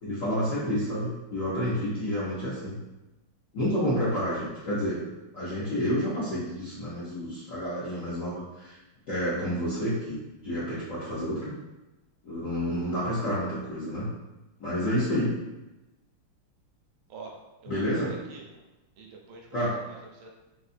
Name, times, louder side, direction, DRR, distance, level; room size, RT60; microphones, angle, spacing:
voice 1, 0.0-2.8 3.5-5.0 5.3-8.8 9.1-10.2 10.4-11.5 12.2-14.1 14.6-15.4 17.7-18.1 19.5-19.8, equal, 70° left, -9 dB, 0.8 m, -29 dB
voice 2, 14.8-15.2 17.1-17.4 17.6-18.4 19.0-20.3, right 4 dB, 75° right, -1 dB, 1.4 m, -46 dB
3.8 x 2.6 x 2.5 m, 1.1 s
omnidirectional pair, 2.4 m